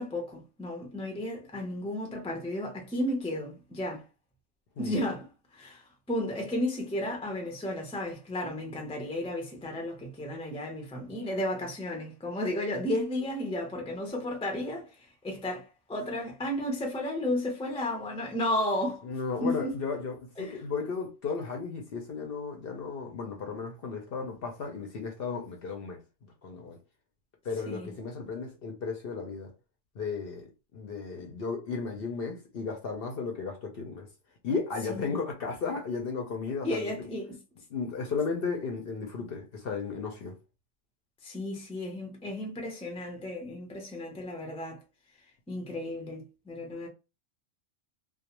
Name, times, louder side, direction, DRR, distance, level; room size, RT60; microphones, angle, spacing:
voice 1, 0.0-4.0 4.8-5.3 5.5-14.9 15.2-19.0 19.4-19.7 20.4-20.6 27.7-27.9 34.9-35.1 36.6-37.4 41.2-44.8 45.5-46.9, left 1 dB, 10° left, 0.3 m, -33 dB
voice 2, 19.0-26.0 26.4-26.8 27.4-29.5 29.9-34.1 34.4-36.9 37.7-40.3, left 4 dB, 60° left, 0.7 m, -34 dB
2.3 x 2.1 x 2.9 m
omnidirectional pair, 1.4 m